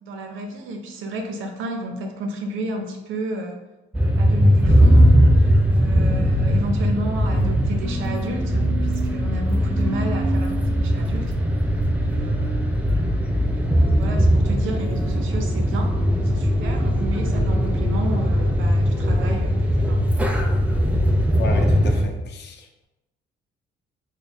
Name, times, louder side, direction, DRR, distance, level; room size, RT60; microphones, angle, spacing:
voice 1, 0.0-3.6 4.2-11.3 12.0-12.6 13.6-15.9 16.2-20.0, right 1 dB, 85° right, 4 dB, 0.6 m, -32 dB
sound 1, 3.9-22.1, equal, 5° right, 0.4 m, -19 dB
voice 2, 21.3-22.8, left 2 dB, 60° left, 3 dB, 0.7 m, -32 dB
3.4 x 2.2 x 4.0 m, 1.0 s
cardioid pair, 90°, 20 cm